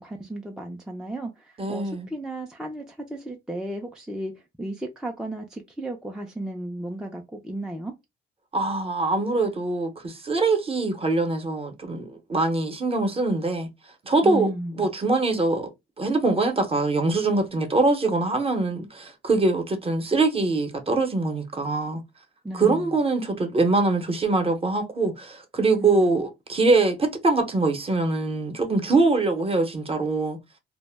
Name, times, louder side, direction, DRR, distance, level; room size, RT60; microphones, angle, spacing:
voice 1, 0.0-4.3 4.6-7.9 14.2-14.9 22.4-23.0 25.8-26.2, right 1 dB, 5° right, 0.4 m, -34 dB
voice 2, 1.6-2.1 8.5-13.7 14.0-14.5 14.8-15.7 16.0-22.0 22.5-30.4, right 3 dB, 30° right, 0.7 m, -23 dB
2.1 x 2.0 x 3.3 m
cardioid pair, 90°, 20 cm